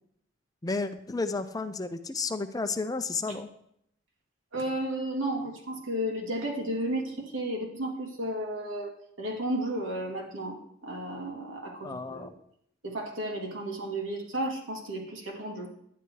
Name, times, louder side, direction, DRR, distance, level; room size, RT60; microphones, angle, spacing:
voice 1, 0.6-3.5 11.8-12.3, left 3 dB, 20° left, 9 dB, 0.5 m, -32 dB
voice 2, 4.5-8.9 9.2-10.6 10.8-12.3 12.8-15.7, right 1 dB, 85° right, 0 dB, 2.5 m, -33 dB
11.0 x 9.8 x 4.6 m, 0.73 s
head